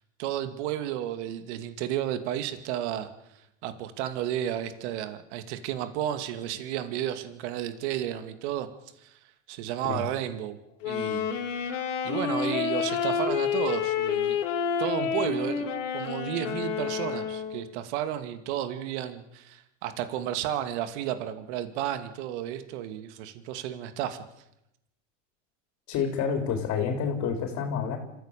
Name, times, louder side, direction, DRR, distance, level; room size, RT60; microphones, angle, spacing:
voice 1, 0.2-3.1 3.6-8.7 9.0-9.2 9.5-10.6 10.8-11.3 11.6-11.7 12.0-14.4 14.8-15.7 15.9-24.2, right 11 dB, 70° right, 9 dB, 2.5 m, -32 dB
Wind instrument woodwind instrument, 10.8-17.7, left 7 dB, 80° left, 3.5 m, -29 dB
voice 2, 25.9-28.0, left 6 dB, 50° left, 4 dB, 4.3 m, -28 dB
26.0 x 15.5 x 6.9 m, 0.83 s
supercardioid pair, 115°, 36 cm